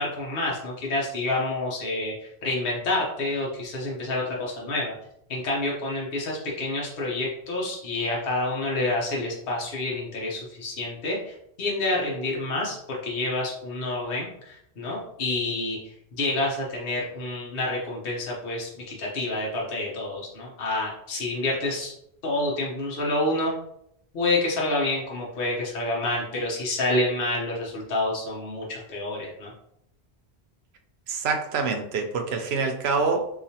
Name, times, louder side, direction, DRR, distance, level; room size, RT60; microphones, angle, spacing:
voice 1, 0.0-4.9 5.3-21.9 22.2-23.5 24.1-29.5, left 2 dB, 60° left, -4 dB, 1.0 m, -28 dB
voice 2, 31.1-33.3, right 4 dB, 75° right, 5 dB, 0.8 m, -26 dB
4.8 x 2.4 x 2.8 m, 0.76 s
omnidirectional pair, 1.1 m